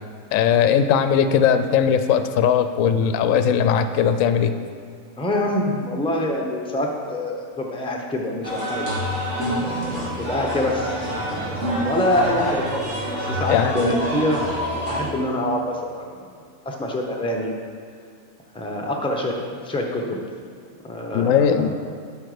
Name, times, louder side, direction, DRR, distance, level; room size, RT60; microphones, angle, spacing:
voice 1, 0.3-4.5 13.5-13.8 21.1-21.7, left 8 dB, 75° left, 10 dB, 0.9 m, -19 dB
voice 2, 5.2-9.0 9.6-14.5 14.9-16.1 16.6-17.5 18.5-19.3 19.6-20.2 20.8-21.7, left 1 dB, 5° left, 1 dB, 0.8 m, -26 dB
sound 1, 8.4-15.0, equal, 60° right, 2.3 m, -26 dB
12.0 x 5.3 x 5.0 m, 2.2 s
omnidirectional pair, 1.4 m